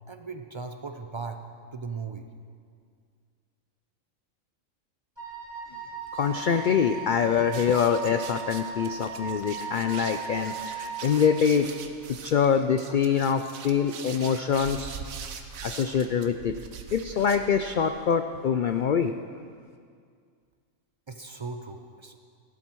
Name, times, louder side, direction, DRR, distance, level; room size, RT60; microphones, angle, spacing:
voice 1, 0.1-1.4 1.7-2.3 21.1-22.2, right 4 dB, 50° right, 6 dB, 0.3 m, -37 dB
Wind instrument woodwind instrument, 5.2-11.3, right 5 dB, 20° right, 1.9 m, -37 dB
voice 2, 6.1-11.7 12.2-15.0 15.6-16.5 16.9-19.1, left 7 dB, 85° left, 8 dB, 0.4 m, -24 dB
sound 1, 7.5-17.9, right 6 dB, 90° right, 1.3 m, -42 dB
16.0 x 11.5 x 4.6 m, 2.2 s
omnidirectional pair, 1.4 m